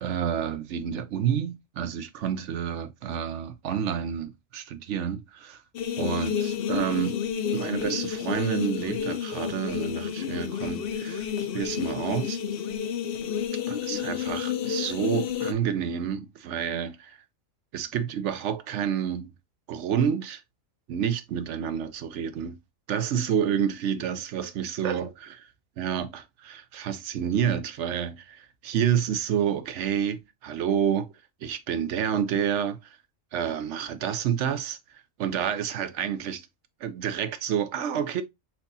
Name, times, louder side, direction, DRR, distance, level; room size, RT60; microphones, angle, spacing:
voice 1, 0.0-5.6 6.0-7.2 7.5-12.4 13.7-17.2 17.7-19.3 19.7-20.4 20.9-22.6 22.9-25.5 25.8-31.1 31.4-33.0 33.3-34.8 35.2-36.4 36.8-38.2, right 8 dB, 70° right, 0.9 m, -29 dB
sound 1, 5.7-15.5, left 8 dB, 60° left, 0.7 m, -30 dB
4.5 x 4.0 x 2.6 m
omnidirectional pair, 1.4 m